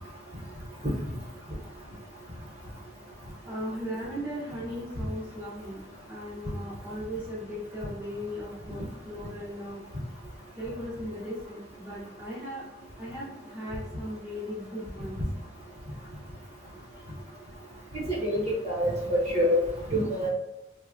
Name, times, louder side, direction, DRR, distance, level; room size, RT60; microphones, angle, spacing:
voice 1, 3.4-5.8 6.1-9.8 10.5-12.6 13.0-15.2, equal, 10° right, -11 dB, 0.7 m, -37 dB
voice 2, 18.1-19.6 19.9-20.3, equal, 35° right, -6 dB, 1.0 m, -26 dB
3.3 x 2.1 x 2.4 m, 0.97 s
head